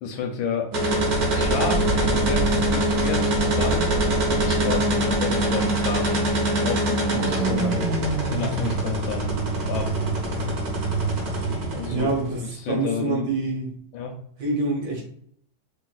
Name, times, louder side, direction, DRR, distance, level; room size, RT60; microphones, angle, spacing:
voice 1, 0.0-0.7 1.3-6.2 6.6-7.9 8.3-9.4 9.7-10.0 11.7-12.1 12.6-13.3 13.9-14.1, left 5 dB, 90° left, 2 dB, 1.4 m, -30 dB
sound 1, 0.7-12.4, right 1 dB, 55° right, 1.3 m, -23 dB
voice 2, 11.9-12.4 12.7-13.8 14.4-15.0, right 3 dB, 70° right, -1 dB, 2.0 m, -26 dB
5.4 x 2.9 x 2.3 m, 0.65 s
omnidirectional pair, 2.1 m